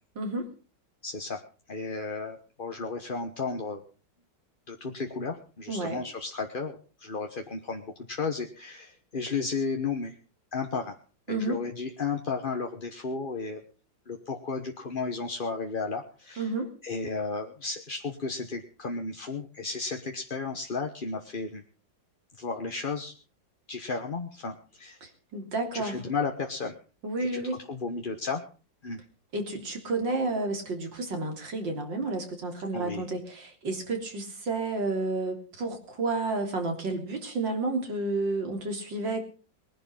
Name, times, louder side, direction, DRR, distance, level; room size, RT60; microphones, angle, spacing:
voice 1, 0.2-0.5 5.7-6.0 11.3-11.6 16.4-16.7 25.0-26.0 27.0-27.6 29.3-39.2, right 2 dB, 80° right, 3 dB, 4.0 m, -31 dB
voice 2, 1.0-1.4 1.7-3.8 4.7-10.1 10.5-10.9 11.3-13.6 14.1-16.5 16.8-21.6 22.4-23.1 23.7-25.0 25.7-26.8 27.2-27.4 27.7-28.4 28.8-29.0 32.7-33.0, left 4 dB, 30° left, 4 dB, 1.2 m, -33 dB
20.5 x 11.0 x 5.6 m, 0.38 s
omnidirectional pair, 2.0 m